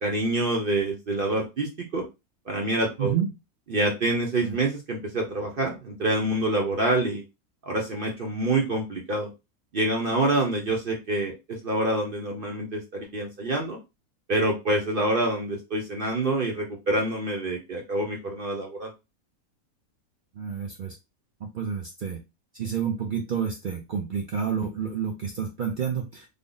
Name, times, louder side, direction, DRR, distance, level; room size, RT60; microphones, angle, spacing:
voice 1, 0.0-2.0 2.5-3.2 3.7-7.2 7.7-9.3 9.7-13.8 14.3-18.9, right 2 dB, 50° right, 1 dB, 0.7 m, -26 dB
voice 2, 3.0-3.3 4.4-4.6 20.4-20.9 21.5-22.2 22.6-26.2, right 7 dB, 85° right, 2 dB, 0.4 m, -29 dB
3.5 x 2.0 x 3.7 m, 0.25 s
omnidirectional pair, 1.6 m